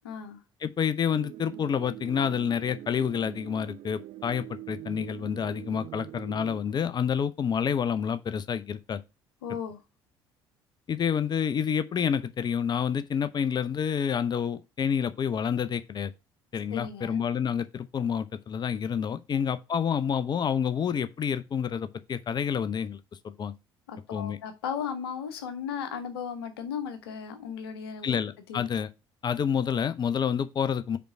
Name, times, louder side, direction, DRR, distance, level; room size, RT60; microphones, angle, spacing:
voice 1, 0.0-0.4 9.4-9.8 16.7-17.2 19.3-19.4 23.9-28.2 28.5-28.6, left 7 dB, 70° left, 1.0 m, -36 dB
voice 2, 0.6-9.0 10.9-16.1 16.5-23.0 23.2-23.5 24.1-24.4 28.0-28.9 29.2-31.0, left 7 dB, 35° left, 0.6 m, -28 dB
sound 1, 1.1-6.6, right 16 dB, 45° right, 0.4 m, -43 dB
5.1 x 4.4 x 5.9 m
figure-of-eight pair, 55°, 13 cm